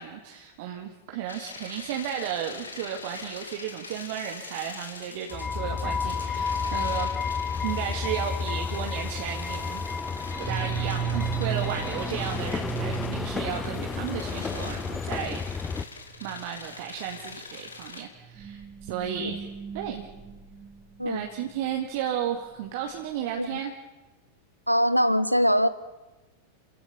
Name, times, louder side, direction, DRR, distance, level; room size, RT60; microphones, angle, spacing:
voice 1, 0.0-7.1 7.6-9.9 10.4-15.4 16.2-19.5 19.7-20.1 21.0-23.7, right 9 dB, 50° right, 3 dB, 2.1 m, -34 dB
sound 1, 1.3-18.0, left 4 dB, 75° left, 2.6 m, -43 dB
sound 2, 5.3-15.8, left 5 dB, 15° left, 0.7 m, -31 dB
sound 3, 9.3-9.4 10.3-14.8 15.2-15.3 15.6-15.9 16.2-16.5 17.1-17.3 18.2-21.4, right 9 dB, 25° right, 1.6 m, -35 dB
voice 2, 24.7-25.7, equal, 90° right, 16 dB, 1.0 m, -22 dB
28.5 x 17.0 x 7.1 m, 1.1 s
figure-of-eight pair, 90°, 0 cm